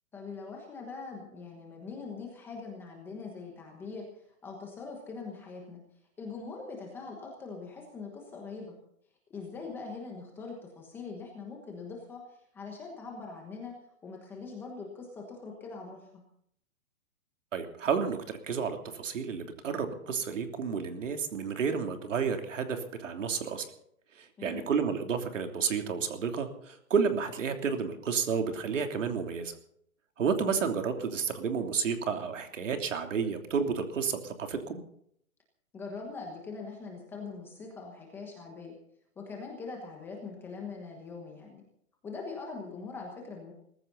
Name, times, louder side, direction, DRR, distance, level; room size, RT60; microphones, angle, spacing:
voice 1, 0.1-5.8 6.2-8.7 9.3-13.7 14.0-16.2 24.4-24.7 35.7-38.7 39.2-41.6 42.0-43.5, left 4 dB, 5° left, 0 dB, 1.2 m, -42 dB
voice 2, 17.5-23.7 24.2-29.5 30.2-34.8, right 6 dB, 60° right, 5 dB, 3.2 m, -31 dB
20.5 x 15.0 x 4.1 m, 0.68 s
hypercardioid pair, 175°, 43 cm